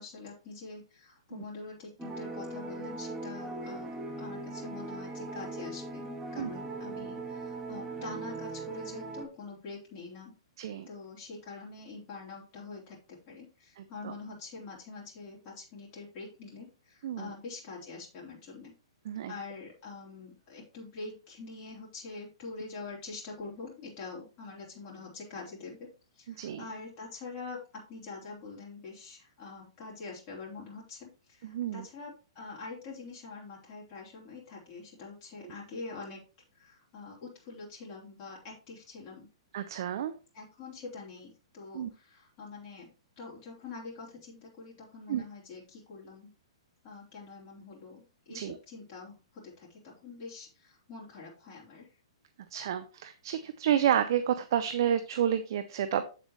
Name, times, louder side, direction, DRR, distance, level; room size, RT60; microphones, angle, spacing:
voice 1, 0.0-10.4 10.9-18.7 19.3-36.2 36.5-39.3 40.3-46.3 46.8-51.9, left 3 dB, 35° left, -5 dB, 3.6 m, -45 dB
sound 1, 2.0-9.3, right 2 dB, 15° right, 1.8 m, -39 dB
voice 2, 10.6-10.9 14.0-14.1 17.0-17.3 19.1-19.3 26.3-26.6 31.4-31.8 35.4-35.5 39.5-40.1 41.7-41.9 45.1-45.2 48.3-48.6 52.5-56.0, right 10 dB, 55° right, 12 dB, 0.6 m, -30 dB
8.0 x 7.5 x 3.1 m, 0.34 s
figure-of-eight pair, 115°, 3 cm